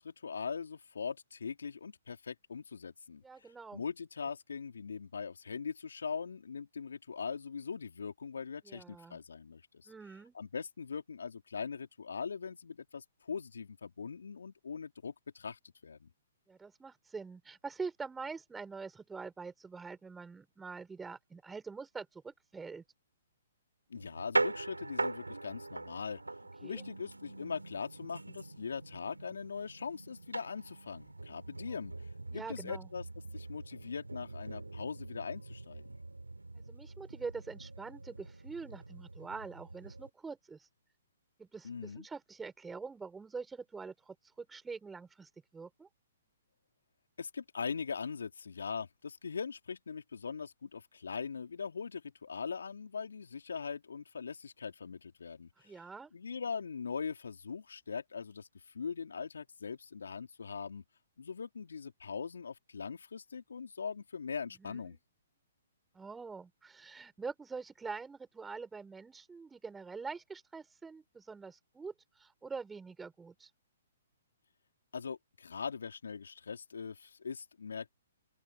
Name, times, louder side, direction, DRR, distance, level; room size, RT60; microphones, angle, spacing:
voice 1, 0.0-9.9 10.3-16.1 23.9-26.2 26.6-31.9 32.3-33.0 33.3-35.9 41.6-42.0 47.2-55.8 56.1-60.8 61.2-65.0 74.9-77.9, left 5 dB, 70° left, 3.4 m, -41 dB
voice 2, 3.2-3.8 8.6-9.2 9.9-10.4 16.5-22.8 26.6-26.9 32.3-32.9 36.6-40.6 41.4-45.9 55.6-56.1 64.6-65.0 65.9-71.9 72.2-73.5, right 4 dB, 10° right, 7.0 m, -45 dB
sound 1, 23.9-40.1, right 2 dB, 90° right, 4.0 m, -41 dB
open air
figure-of-eight pair, 125°, 0 cm